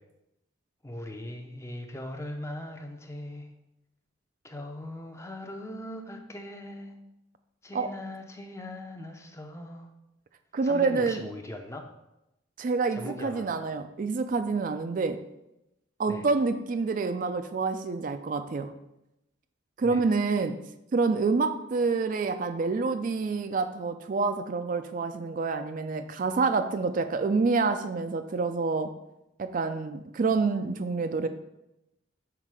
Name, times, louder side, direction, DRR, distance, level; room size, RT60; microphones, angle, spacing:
voice 1, 0.8-3.5 4.4-7.0 7.6-9.9 10.6-11.9 12.9-13.5 16.1-16.2 19.8-20.0 20.3-20.4, left 1 dB, 15° left, 4 dB, 0.6 m, -40 dB
voice 2, 10.5-11.2 12.6-15.2 16.0-18.7 19.8-20.6 20.9-28.9 29.4-31.3, right 4 dB, 45° right, 8 dB, 0.3 m, -27 dB
5.8 x 4.4 x 4.7 m, 0.89 s
head